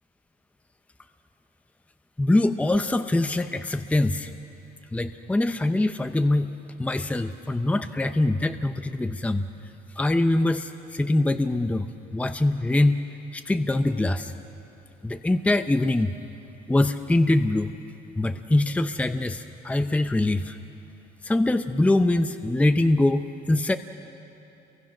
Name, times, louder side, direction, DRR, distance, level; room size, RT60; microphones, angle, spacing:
voice 1, 2.2-4.3 4.9-6.5 6.8-9.5 10.0-13.0 13.3-14.3 15.0-16.1 16.7-17.7 18.2-20.6 21.2-23.8, left 2 dB, 10° left, 9 dB, 0.7 m, -23 dB
29.0 x 23.5 x 6.0 m, 2.8 s
cardioid pair, 110°, 17 cm